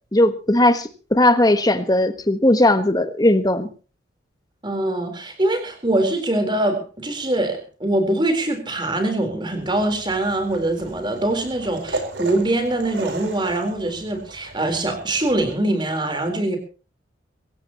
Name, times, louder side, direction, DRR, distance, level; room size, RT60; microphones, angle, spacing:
voice 1, 0.1-3.7, left 1 dB, 20° left, 1.3 m, -18 dB
voice 2, 4.6-16.6, right 1 dB, 25° right, 4.0 m, -23 dB
sound 1, 9.5-15.6, right 2 dB, 75° right, 4.4 m, -36 dB
24.0 x 15.5 x 3.0 m
head